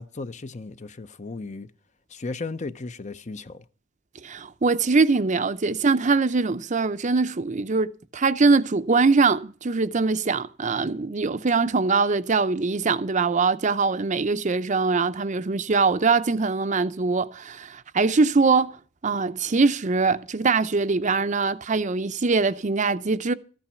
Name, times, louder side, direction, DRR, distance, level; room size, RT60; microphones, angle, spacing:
voice 1, 0.0-1.7 2.1-3.6, left 3 dB, 40° left, 0.7 m, -35 dB
voice 2, 4.2-18.8 19.0-23.3, right 4 dB, 40° right, 0.6 m, -22 dB
14.0 x 8.9 x 5.6 m
head